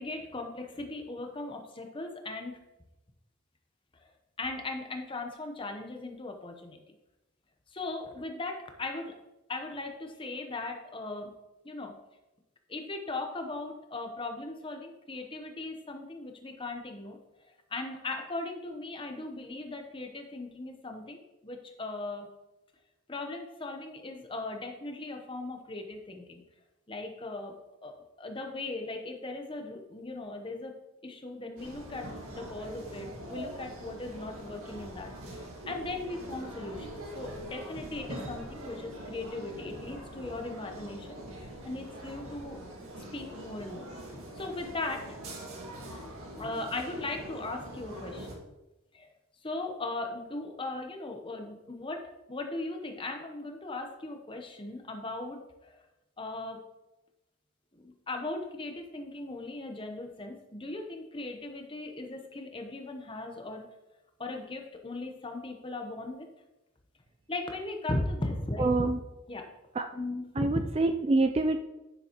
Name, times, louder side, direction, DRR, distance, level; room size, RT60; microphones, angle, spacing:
voice 1, 0.0-2.6 3.9-4.0 4.4-6.8 7.7-9.2 9.5-11.3 11.6-12.0 12.7-17.2 17.7-22.3 23.1-26.4 26.9-27.5 27.8-30.7 31.0-42.6 42.9-43.9 44.3-45.2 46.4-48.4 48.9-49.1 49.4-55.8 56.2-56.6 57.7-63.7 64.2-66.3 67.3-68.8 69.3-69.5 69.9-70.4, left 2 dB, 25° left, 4 dB, 0.8 m, -38 dB
sound 1, 31.6-48.3, right 1 dB, 80° right, 1.9 m, -43 dB
voice 2, 68.6-69.0 69.8-69.9 70.4-71.6, right 3 dB, 25° right, 6 dB, 0.3 m, -26 dB
9.9 x 6.9 x 3.0 m, 0.98 s
head